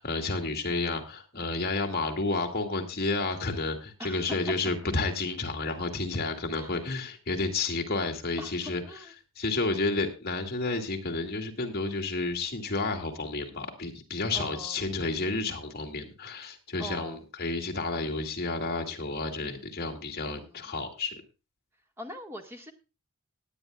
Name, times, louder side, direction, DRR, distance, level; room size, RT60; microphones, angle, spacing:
voice 1, 0.0-8.8 9.4-21.2, left 3 dB, 45° left, 3 dB, 2.3 m, -31 dB
voice 2, 4.0-4.4 6.5-6.7 8.4-9.1 14.3-14.9 16.8-17.2 20.3-20.7 22.0-22.7, equal, 10° right, 4 dB, 1.8 m, -42 dB
18.5 x 10.0 x 2.4 m, 0.30 s
head